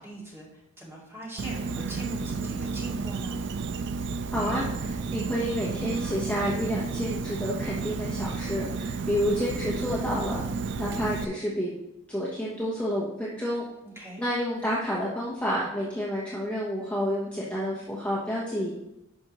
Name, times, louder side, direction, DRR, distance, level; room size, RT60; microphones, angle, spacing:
voice 1, 0.0-3.4 14.0-14.2, right 1 dB, 15° right, -5 dB, 2.2 m, -41 dB
Insect, 1.4-11.2, right 4 dB, 55° right, 0.4 m, -32 dB
voice 2, 4.3-10.4 10.8-11.7 12.1-13.6 14.2-18.7, equal, 5° left, -6 dB, 1.1 m, -29 dB
11.0 x 5.4 x 3.1 m, 0.89 s
head